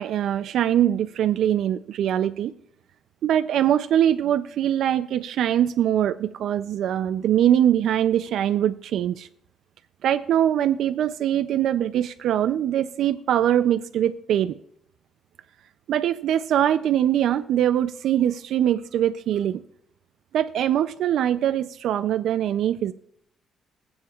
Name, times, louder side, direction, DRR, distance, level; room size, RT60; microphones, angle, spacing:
voice 1, 0.0-2.5 3.2-9.3 10.0-14.6 15.9-19.6 20.3-22.9, right 10 dB, 75° right, 11 dB, 0.4 m, -22 dB
20.5 x 7.9 x 2.4 m, 0.73 s
cardioid pair, 90°, 0 cm